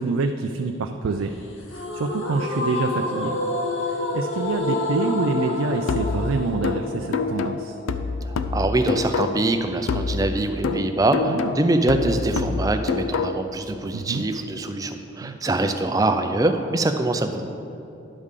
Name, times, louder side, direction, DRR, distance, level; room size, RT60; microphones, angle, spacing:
voice 1, 0.0-1.3 1.7-3.4 3.9-7.7 10.4-10.9 11.3-11.5 13.9-14.2 15.2-15.4, right 4 dB, 90° right, 5 dB, 0.4 m, -27 dB
sound 1, 1.7-8.7, left 2 dB, 75° left, 0.9 m, -28 dB
sound 2, 5.9-9.6 9.9-13.6, left 4 dB, 90° left, 0.4 m, -27 dB
voice 2, 8.2-17.4, right 2 dB, 15° right, 6 dB, 0.4 m, -24 dB
10.5 x 3.7 x 6.5 m, 2.8 s
head